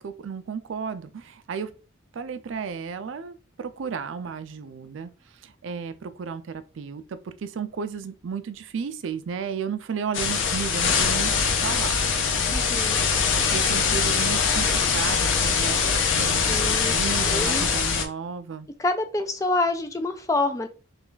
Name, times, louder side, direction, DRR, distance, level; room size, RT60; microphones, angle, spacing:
voice 1, 0.0-1.7 2.1-5.1 5.4-14.7 14.9-18.7, right 6 dB, 75° right, 0.4 m, -34 dB
sound 1, 10.1-18.1, left 6 dB, 75° left, 0.6 m, -23 dB
voice 2, 12.5-13.0 16.5-17.0 17.3-17.7 18.8-20.7, left 2 dB, 15° left, 0.3 m, -27 dB
3.2 x 2.3 x 3.8 m
head